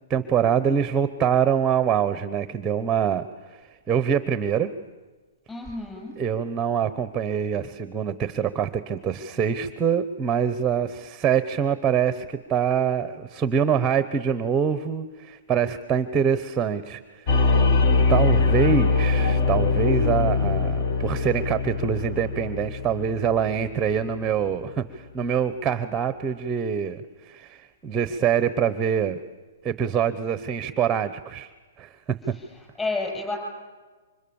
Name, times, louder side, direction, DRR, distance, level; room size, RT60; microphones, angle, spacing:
voice 1, 0.1-4.7 6.2-17.7 18.1-29.2 29.6-31.5 31.8-32.0, right 7 dB, 15° right, 13 dB, 0.9 m, -25 dB
voice 2, 5.5-6.2 32.3-33.4, left 3 dB, 10° left, 1 dB, 7.4 m, -31 dB
sound 1, 17.3-24.1, left 4 dB, 40° left, 1.5 m, -22 dB
29.0 x 25.5 x 7.1 m, 1.3 s
hypercardioid pair, 155°, 0 cm